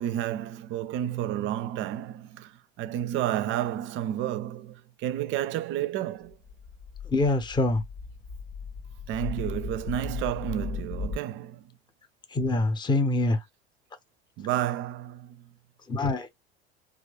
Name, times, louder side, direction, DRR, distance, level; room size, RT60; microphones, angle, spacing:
voice 1, 0.0-6.4 9.1-11.7 14.4-15.4, right 12 dB, 40° right, 0.5 m, -31 dB
sound 1, 6.3-11.2, left 5 dB, 70° left, 1.1 m, -37 dB
voice 2, 7.1-7.8 12.3-13.4 15.9-16.3, left 2 dB, 15° left, 0.7 m, -25 dB
3.1 x 2.4 x 3.3 m
figure-of-eight pair, 70°, 31 cm